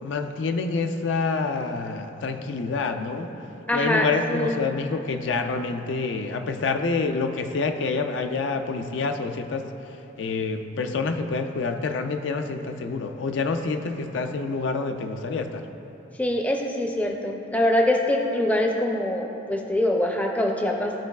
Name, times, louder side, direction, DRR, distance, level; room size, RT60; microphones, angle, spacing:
voice 1, 0.0-3.3 3.7-15.7, left 4 dB, 75° left, 7 dB, 0.4 m, -27 dB
voice 2, 3.7-4.6 16.2-20.9, left 1 dB, 10° left, 1 dB, 0.4 m, -24 dB
13.0 x 4.7 x 2.3 m, 3.0 s
head